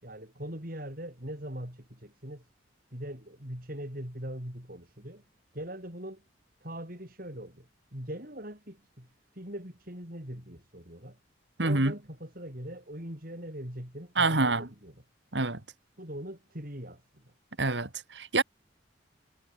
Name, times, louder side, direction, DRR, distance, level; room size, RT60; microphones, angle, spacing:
voice 1, 0.0-2.5 2.9-5.2 5.5-6.2 6.6-11.2 11.6-14.9 16.0-17.3, right 1 dB, 50° right, 7.5 m, -41 dB
voice 2, 11.6-11.9 14.2-14.7 15.3-15.6 17.6-18.4, right 3 dB, 70° right, 2.4 m, -26 dB
head